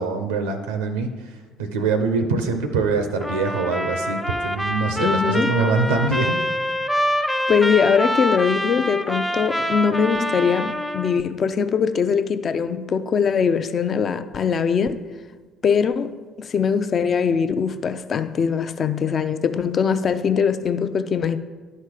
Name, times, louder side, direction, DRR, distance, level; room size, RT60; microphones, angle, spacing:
voice 1, 0.0-6.4, right 4 dB, 85° right, 0.6 m, -24 dB
Trumpet, 3.2-11.2, equal, 5° left, 0.6 m, -25 dB
voice 2, 5.0-5.6 7.5-15.0 15.6-21.4, left 6 dB, 45° left, 0.5 m, -21 dB
11.0 x 4.3 x 4.8 m
hypercardioid pair, 55°, 0 cm